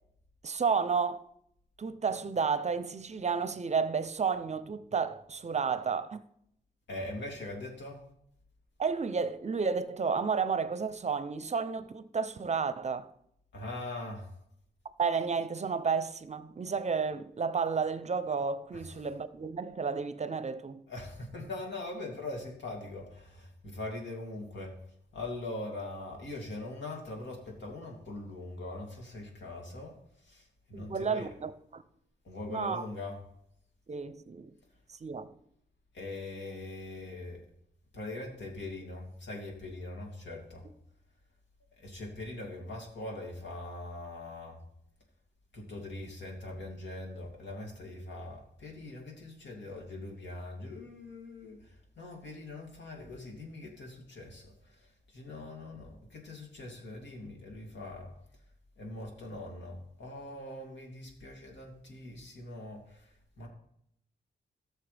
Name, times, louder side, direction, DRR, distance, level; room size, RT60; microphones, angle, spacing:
voice 1, 0.4-1.3 1.8-6.2 8.8-13.1 15.0-20.8 30.7-31.8 32.5-32.9 33.9-34.5 34.9-35.3, right 5 dB, 40° right, 0.6 m, -32 dB
voice 2, 6.9-8.0 13.5-14.3 18.7-18.8 20.9-24.7 25.1-29.9 30.2-31.3 32.2-33.1 35.9-37.4 37.9-40.6 41.8-44.6 45.5-54.8 55.1-58.1 58.8-63.1 63.4-63.5, left 2 dB, 80° left, 2.7 m, -42 dB
17.5 x 6.6 x 3.4 m
wide cardioid pair, 105°, 18 cm